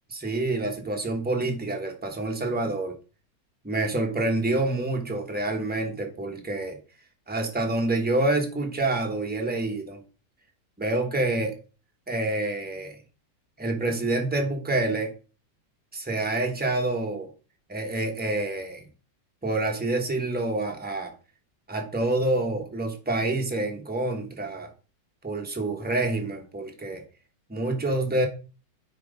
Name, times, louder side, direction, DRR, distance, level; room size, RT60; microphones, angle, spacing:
voice 1, 0.1-2.9 3.6-6.8 7.3-10.0 10.8-11.6 12.1-13.0 13.6-15.1 15.9-17.3 17.7-18.8 19.4-21.1 21.7-24.7 25.2-27.0 27.5-28.3, right 2 dB, 5° right, 2 dB, 0.9 m, -27 dB
9.2 x 3.1 x 5.0 m, 0.35 s
omnidirectional pair, 2.0 m